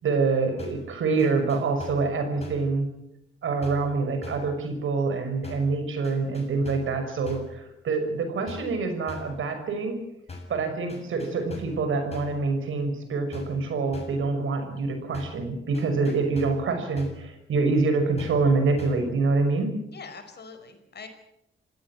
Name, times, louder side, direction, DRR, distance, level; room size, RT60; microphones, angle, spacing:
voice 1, 0.0-2.9 3.4-10.0 10.5-19.7, right 3 dB, 80° right, 7 dB, 6.0 m, -26 dB
sound 1, 0.6-0.9 1.2-2.1 2.4-2.7 3.6-3.9 4.2-4.5 5.4-5.8 6.0-7.0 7.2-7.6 8.5-8.8 9.1-9.4 10.3-10.6 10.9-11.8 12.1-12.4 13.3-13.6 13.9-14.3 15.1-15.5 15.7-16.7 17.0-17.3 18.2-18.5 18.8-19.1, left 2 dB, 30° left, 7.1 m, -42 dB
voice 2, 19.9-21.1, left 5 dB, 55° left, 7 dB, 5.3 m, -44 dB
28.0 x 17.0 x 7.7 m, 0.79 s
cardioid pair, 100°, 20 cm